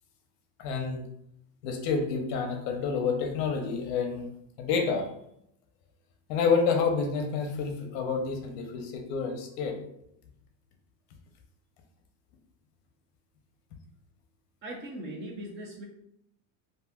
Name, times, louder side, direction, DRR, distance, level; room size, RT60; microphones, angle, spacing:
voice 1, 0.6-1.1 1.6-4.3 4.6-5.1 6.3-9.8, left 5 dB, 50° left, 4 dB, 0.7 m, -28 dB
voice 2, 14.6-15.8, right 1 dB, 25° right, 0 dB, 0.4 m, -39 dB
2.6 x 2.3 x 3.5 m, 0.75 s
supercardioid pair, 150°, 49 cm